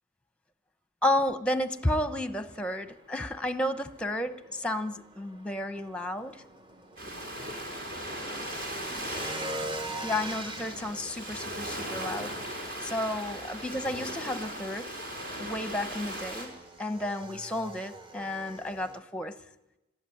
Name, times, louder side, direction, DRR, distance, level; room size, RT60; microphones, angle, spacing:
voice 1, 1.0-6.4 10.0-14.9 15.4-16.5 16.8-19.4, left 1 dB, 5° left, 10 dB, 1.0 m, -32 dB
Motorcycle / Engine, 1.6-19.0, right 1 dB, 20° right, 1.3 m, -44 dB
Ocean, 7.0-16.5, right 1 dB, 50° right, 4.8 m, -38 dB
26.0 x 13.0 x 10.0 m, 1.0 s
head